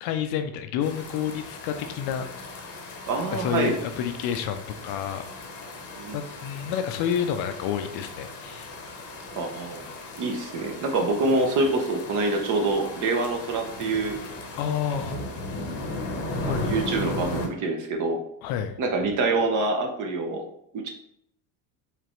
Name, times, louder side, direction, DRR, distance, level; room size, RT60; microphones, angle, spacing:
voice 1, 0.0-2.5 3.3-5.3 6.1-8.7 14.6-15.2 16.4-16.8 18.4-18.8, left 9 dB, 55° left, 8 dB, 0.5 m, -29 dB
sound 1, 0.8-17.5, left 2 dB, 30° left, 0.8 m, -37 dB
voice 2, 3.0-3.8 6.0-6.2 9.3-9.9 10.2-14.2 16.4-18.2 18.8-20.5 20.7-20.9, right 3 dB, 40° right, 3 dB, 0.8 m, -26 dB
4.9 x 3.3 x 3.1 m, 0.72 s
cardioid pair, 145°, 47 cm